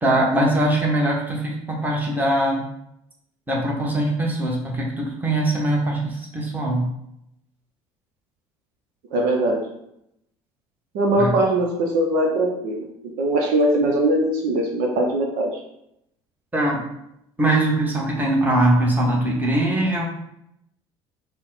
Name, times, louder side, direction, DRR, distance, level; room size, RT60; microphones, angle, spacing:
voice 1, 0.0-2.6 3.5-6.9 11.2-11.3 16.5-16.8 17.4-20.1, right 1 dB, 10° right, -2 dB, 1.3 m, -21 dB
voice 2, 9.1-9.6 10.9-12.8 13.2-15.5, right 1 dB, 70° right, 0 dB, 0.7 m, -21 dB
4.1 x 2.2 x 4.0 m, 0.80 s
hypercardioid pair, 65°, 15 cm